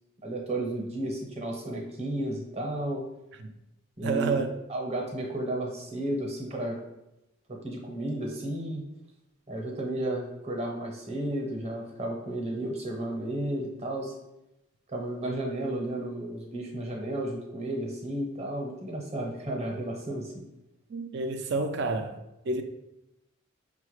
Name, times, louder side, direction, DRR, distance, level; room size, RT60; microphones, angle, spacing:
voice 1, 0.2-3.0 4.0-4.4 4.7-6.8 7.5-8.8 9.5-14.1 14.9-20.4, right 1 dB, 30° right, 0.7 m, -33 dB
voice 2, 4.0-4.5 20.9-22.2 22.5-22.6, right 3 dB, 55° right, 0.3 m, -29 dB
5.4 x 2.2 x 3.0 m
head